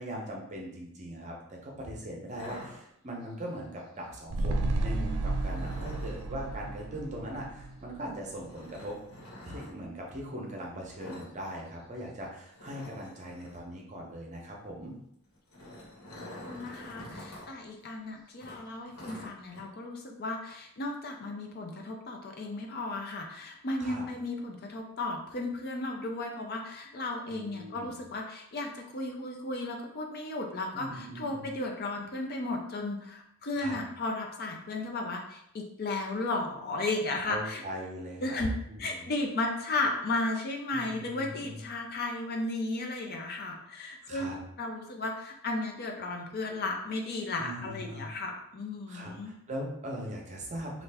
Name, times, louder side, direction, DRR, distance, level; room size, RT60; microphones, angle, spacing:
voice 1, 0.0-8.9 9.5-14.9 23.8-24.0 27.3-28.0 30.7-31.5 33.5-33.8 37.2-39.0 40.7-41.6 44.0-44.4 47.4-48.1 48.9-50.8, equal, 35° right, -1 dB, 0.7 m, -40 dB
sound 1, 2.3-3.3 5.3-6.3 8.5-9.7 11.0-11.3 11.6-11.8 12.1-12.2 12.5-13.7 15.2-17.5 17.8-17.9 18.4-19.6, left 1 dB, 80° left, 1.3 m, -46 dB
sound 2, 4.3-8.8 9.1-9.2, right 2 dB, 85° right, 0.4 m, -33 dB
voice 2, 16.4-37.6 38.2-49.3, left 2 dB, 45° left, 2 dB, 0.5 m, -34 dB
3.2 x 2.5 x 3.4 m, 0.75 s
head